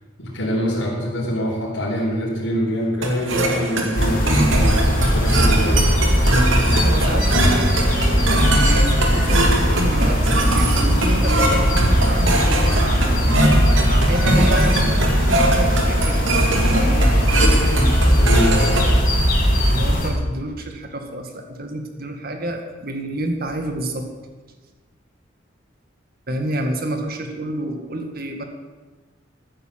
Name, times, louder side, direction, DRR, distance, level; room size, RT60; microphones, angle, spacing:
voice 1, 0.2-6.0 18.2-18.5, equal, 80° left, -7 dB, 4.3 m, -25 dB
sound 1, 3.0-19.0, right 1 dB, 80° right, 2.4 m, -22 dB
sound 2, 3.9-20.1, equal, 45° left, 3.8 m, -18 dB
voice 2, 6.7-13.2 13.9-17.2 19.7-24.1 26.3-28.4, right 1 dB, 50° right, 5 dB, 2.0 m, -29 dB
14.5 x 9.7 x 7.6 m, 1.3 s
head